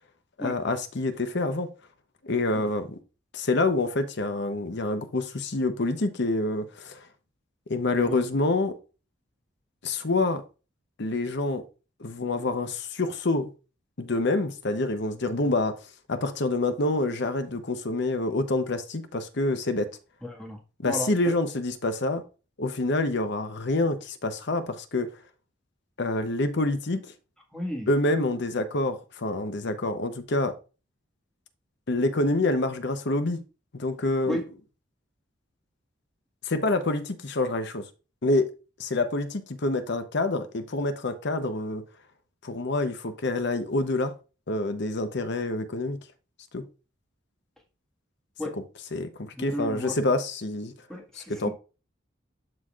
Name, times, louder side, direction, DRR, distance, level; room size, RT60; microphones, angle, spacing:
voice 1, 0.4-1.7 2.2-3.0 3.3-7.0 7.7-8.7 9.8-10.4 11.0-11.6 12.0-13.5 14.0-15.7 16.1-19.9 20.8-22.2 22.6-25.1 26.0-27.0 27.9-30.5 31.9-33.4 33.7-34.4 36.4-37.8 38.2-38.5 38.8-41.8 42.4-44.1 44.5-46.0 46.5-46.6 48.5-48.6 48.9-50.7 51.2-51.5, left 2 dB, 60° left, 0.8 m, -27 dB
voice 2, 20.2-20.6 20.9-21.3 27.5-27.9 34.3-34.4 48.4-48.6 49.4-49.9 50.9-51.5, equal, 5° left, 1.7 m, -33 dB
12.0 x 4.1 x 2.4 m
head